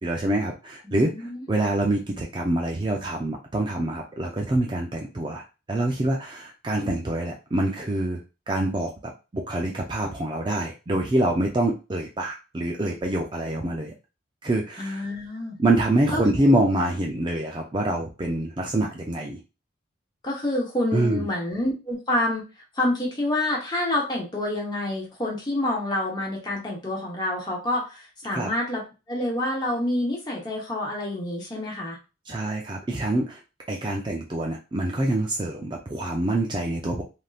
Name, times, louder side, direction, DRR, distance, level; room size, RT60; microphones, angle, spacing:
voice 1, 0.0-1.1 1.5-5.4 5.7-13.9 14.4-15.0 15.6-19.4 20.9-21.3 28.3-28.5 32.3-33.4 33.7-37.0, right 1 dB, 25° right, 0 dB, 0.4 m, -25 dB
voice 2, 0.8-1.5 14.8-15.6 16.1-16.6 20.2-22.4 22.8-28.8 29.1-32.0, left 1 dB, 20° left, -2 dB, 0.9 m, -28 dB
3.4 x 2.6 x 2.4 m, 0.29 s
head